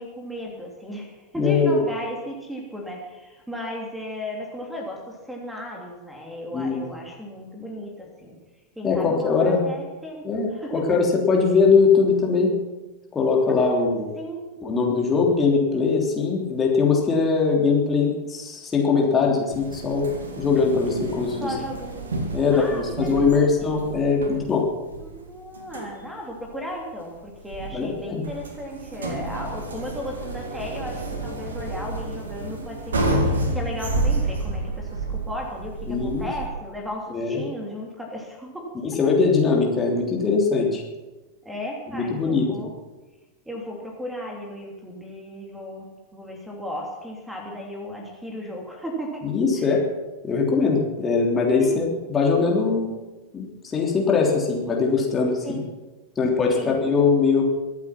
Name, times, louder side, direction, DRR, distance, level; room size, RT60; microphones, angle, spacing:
voice 1, 0.0-8.4 8.7-10.2 10.5-10.8 13.7-14.7 21.4-22.2 22.5-23.6 25.0-38.7 39.0-39.1 41.4-42.7 43.4-49.2 49.6-49.7 51.6-51.8 55.4-55.6 56.5-56.8, equal, 5° right, 0 dB, 3.1 m, -35 dB
voice 2, 1.3-1.8 6.5-6.8 8.8-9.6 10.2-12.5 13.1-14.1 14.6-20.1 20.4-21.5 22.3-24.7 27.7-28.2 35.9-36.3 37.1-37.4 38.8-40.8 41.9-42.5 49.2-49.8 50.2-52.9 53.3-55.6 56.2-57.4, left 4 dB, 20° left, -1 dB, 3.3 m, -21 dB
sound 1, 19.5-36.5, right 2 dB, 70° right, 2.2 m, -30 dB
23.5 x 8.4 x 6.0 m, 1.2 s
figure-of-eight pair, 90°, 0 cm